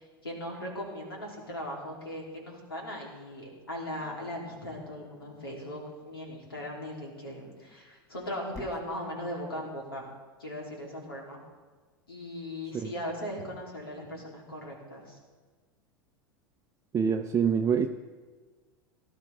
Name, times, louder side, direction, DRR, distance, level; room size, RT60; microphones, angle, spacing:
voice 1, 0.0-10.1 10.4-11.4 12.1-15.2, equal, 85° left, -1 dB, 3.4 m, -38 dB
Dog, 3.9-5.5 7.1-8.9, left 3 dB, 25° left, 1.3 m, -50 dB
voice 2, 16.9-17.9, right 7 dB, 25° right, 5 dB, 0.6 m, -25 dB
17.5 x 12.5 x 3.6 m, 1.4 s
figure-of-eight pair, 85°, 12 cm